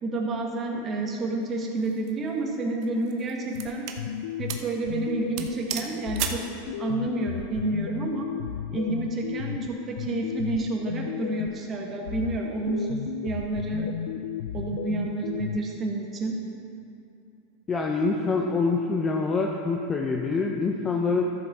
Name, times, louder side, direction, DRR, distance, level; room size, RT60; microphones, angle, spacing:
voice 1, 0.0-3.9 4.4-6.4 6.8-8.3 8.7-13.9 14.5-16.4, right 2 dB, 25° right, 0 dB, 1.5 m, -29 dB
sound 1, 1.8-2.1 2.8-4.0 4.5-4.7 5.0-5.1 5.4-6.5, right 9 dB, 55° right, 0.8 m, -34 dB
sound 2, 3.5-5.7 6.1-11.7 12.1-15.6, left 10 dB, 80° left, 0.3 m, -34 dB
voice 2, 17.7-21.2, left 4 dB, 20° left, 1 dB, 0.7 m, -25 dB
13.5 x 7.0 x 4.3 m, 2.6 s
supercardioid pair, 130°, 0 cm